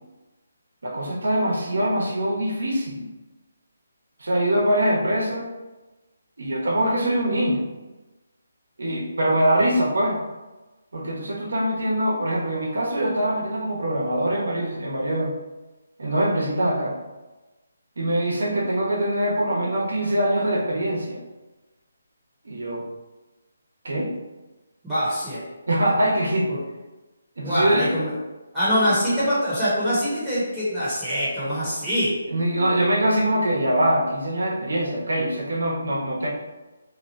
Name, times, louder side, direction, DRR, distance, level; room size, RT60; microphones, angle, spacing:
voice 1, 0.8-3.1 4.2-5.5 6.4-7.7 8.8-10.2 10.9-15.3 16.0-17.0 18.0-21.2 22.4-22.8 23.8-24.1 25.7-26.5 27.4-27.9 30.7-30.8 32.3-36.3, right 1 dB, 80° right, -2 dB, 1.0 m, -23 dB
voice 2, 24.8-25.4 26.5-26.6 27.4-28.1 28.5-32.1, equal, 5° right, -14 dB, 1.0 m, -24 dB
2.9 x 2.3 x 4.1 m, 1.1 s
hypercardioid pair, 165°, 0 cm